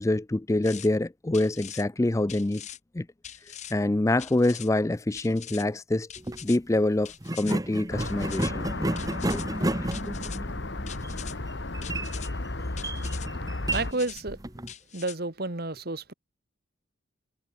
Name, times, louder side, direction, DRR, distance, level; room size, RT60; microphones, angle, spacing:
voice 1, 0.0-2.6 2.9-3.1 3.7-6.1 6.4-8.6 9.2-9.4 9.8-10.1, left 2 dB, 15° left, 0.4 m, -26 dB
sound 1, 0.6-0.9 1.3-1.8 2.3-2.8 3.2-3.7 4.2-4.7 5.1-5.6 6.1-6.6 7.0-7.6 8.0-8.5 9.0-9.5 9.9-10.4 10.9-11.3 11.8-12.3 12.8-13.3 13.7-14.2 14.7-15.2, left 10 dB, 35° left, 1.1 m, -43 dB
sound 2, 6.2-6.4 7.2-14.7, right 1 dB, 20° right, 1.2 m, -32 dB
sound 3, 7.9-13.9, left 2 dB, 55° left, 1.4 m, -34 dB
voice 2, 13.7-14.4 14.9-16.1, right 2 dB, 50° right, 1.6 m, -31 dB
head